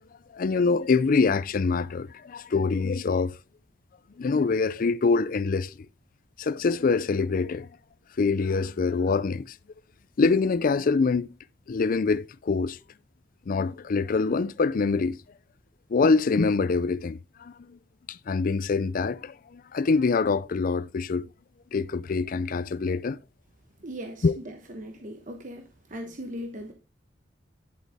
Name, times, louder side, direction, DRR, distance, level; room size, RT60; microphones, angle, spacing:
voice 1, 0.3-3.3 4.2-5.7 6.4-7.7 8.2-9.5 10.2-11.3 11.7-12.8 13.5-15.2 15.9-17.8 18.1-21.2 21.7-23.2 24.2-24.4, left 4 dB, 50° left, 0.4 m, -25 dB
voice 2, 23.8-25.6 25.9-26.7, equal, 45° right, 1.1 m, -38 dB
10.5 x 8.0 x 3.5 m
head